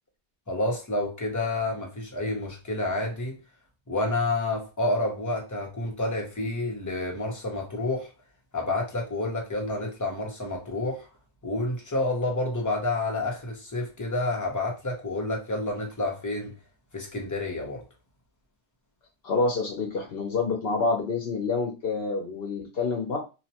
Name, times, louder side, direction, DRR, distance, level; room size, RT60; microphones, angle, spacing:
voice 1, 0.5-3.4 3.9-8.1 8.5-11.1 11.4-16.5 16.9-17.8, left 2 dB, 20° left, 0.6 m, -29 dB
voice 2, 19.2-23.2, left 3 dB, 65° left, 0.8 m, -27 dB
2.8 x 2.1 x 2.8 m
omnidirectional pair, 1.1 m